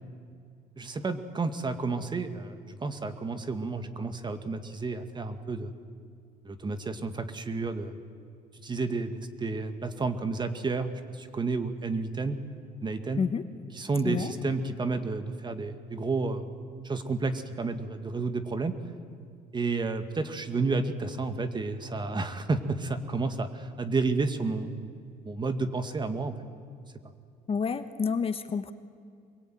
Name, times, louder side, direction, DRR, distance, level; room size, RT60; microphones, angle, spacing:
voice 1, 0.8-5.7 6.4-7.9 8.5-12.4 12.8-13.2 13.7-16.5 16.8-18.7 19.5-24.9 25.2-26.3, right 3 dB, 25° right, 9 dB, 2.0 m, -31 dB
voice 2, 27.5-28.7, left 6 dB, 35° left, 10 dB, 1.2 m, -29 dB
24.5 x 22.0 x 9.3 m, 2.3 s
cardioid pair, 110°, 17 cm